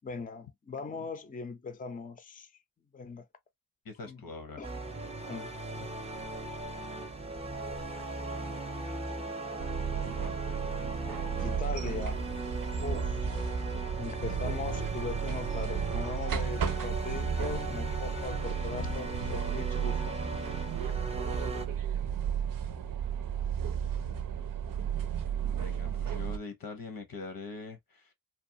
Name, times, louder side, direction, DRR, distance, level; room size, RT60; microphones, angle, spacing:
voice 1, 0.0-2.5 2.9-3.3 4.0-4.2 4.6-4.7 5.3-5.5 5.8-6.1 10.0-10.1 11.4-12.3 12.8-13.4 14.0-20.2, left 4 dB, 25° left, 0.4 m, -40 dB
voice 2, 3.8-4.6 17.5-17.8 18.7-18.9 19.2-19.4 25.4-28.1, left 4 dB, 90° left, 0.8 m, -42 dB
sound 1, 4.6-21.7, right 2 dB, 20° right, 0.6 m, -38 dB
sound 2, 9.6-26.4, right 8 dB, 70° right, 0.5 m, -34 dB
2.6 x 2.3 x 2.6 m
wide cardioid pair, 70°, 34 cm